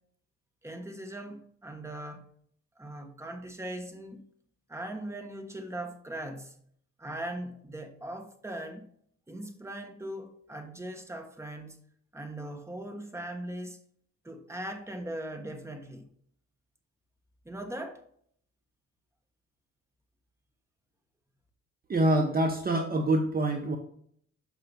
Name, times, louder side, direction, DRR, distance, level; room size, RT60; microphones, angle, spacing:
voice 1, 0.6-2.3 2.8-4.2 4.7-6.6 7.0-8.9 9.3-11.8 12.1-13.8 14.2-16.1 17.4-18.0, right 1 dB, 10° right, 1.3 m, -40 dB
voice 2, 21.9-23.8, right 1 dB, 30° right, 1.0 m, -25 dB
6.6 x 5.7 x 5.2 m
cardioid pair, 90°, 30 cm